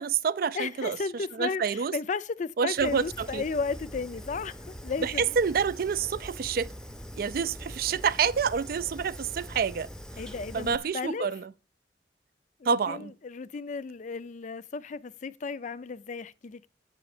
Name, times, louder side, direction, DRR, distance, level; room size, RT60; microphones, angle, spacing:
voice 1, 0.0-1.0 1.4-1.9 2.6-3.4 5.0-6.7 7.2-9.9 10.5-11.5 12.7-13.1, right 6 dB, 55° right, 0.4 m, -28 dB
voice 2, 0.5-5.4 10.2-11.3 12.6-16.7, left 4 dB, 45° left, 0.4 m, -34 dB
Fire, 2.8-10.8, equal, 5° left, 0.6 m, -43 dB
8.9 x 7.0 x 4.9 m
head